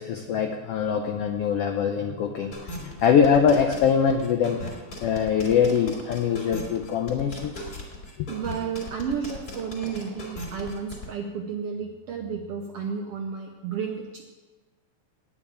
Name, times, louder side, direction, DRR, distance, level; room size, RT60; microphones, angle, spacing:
voice 1, 0.0-2.5 2.8-4.7 5.0-7.7 8.2-8.3, left 7 dB, 85° left, 5 dB, 1.3 m, -23 dB
sound 1, 2.5-11.1, left 1 dB, 30° left, 3.3 m, -37 dB
voice 2, 8.3-14.2, right 6 dB, 75° right, 2 dB, 1.4 m, -32 dB
9.8 x 7.0 x 8.6 m, 1.3 s
omnidirectional pair, 3.6 m